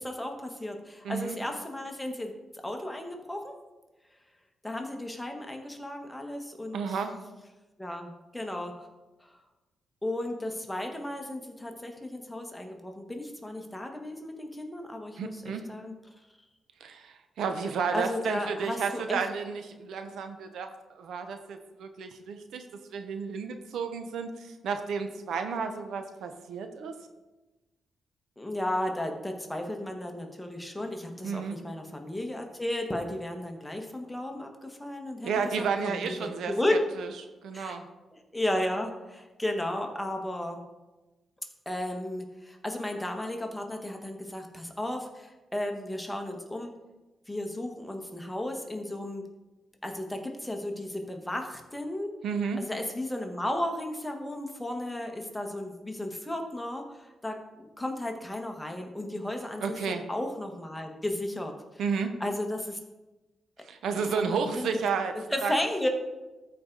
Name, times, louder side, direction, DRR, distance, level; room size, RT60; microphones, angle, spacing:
voice 1, 0.0-2.3 2.6-3.5 4.6-7.0 7.8-8.9 9.2-9.3 10.0-15.4 15.7-15.9 17.9-19.2 28.4-35.3 35.6-36.8 37.5-37.8 38.3-40.6 41.6-46.7 47.3-49.2 49.8-52.1 52.6-61.5 62.2-62.8 63.9-64.7 65.3-65.9, left 1 dB, 10° left, 3 dB, 1.2 m, -34 dB
voice 2, 1.0-1.4 6.7-7.1 15.2-15.6 16.8-22.6 22.9-26.9 31.2-31.6 35.2-37.1 37.4-37.8 52.2-52.6 59.6-60.0 61.8-62.1 63.6-65.1 65.4-65.5, right 5 dB, 80° right, 7 dB, 0.8 m, -32 dB
13.5 x 4.6 x 3.9 m, 1.1 s
cardioid pair, 95°, 0 cm